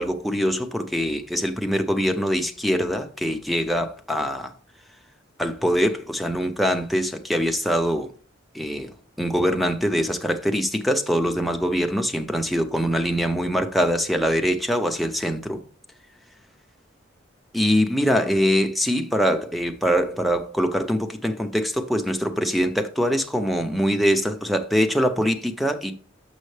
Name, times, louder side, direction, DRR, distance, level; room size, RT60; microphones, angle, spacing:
voice 1, 0.0-4.5 5.4-8.1 8.5-15.6 17.5-25.9, equal, ahead, 0.6 m, -23 dB
7.4 x 5.4 x 3.2 m
head